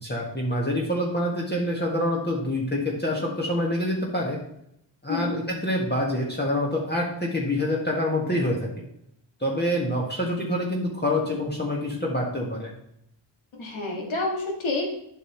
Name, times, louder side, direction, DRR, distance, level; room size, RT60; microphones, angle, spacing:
voice 1, 0.0-4.4 5.0-8.8 9.4-12.7, left 1 dB, 20° left, -2 dB, 1.7 m, -26 dB
voice 2, 5.1-5.4 13.5-14.9, left 2 dB, 75° left, 0 dB, 2.0 m, -28 dB
8.1 x 5.9 x 3.0 m, 0.76 s
cardioid pair, 45°, 48 cm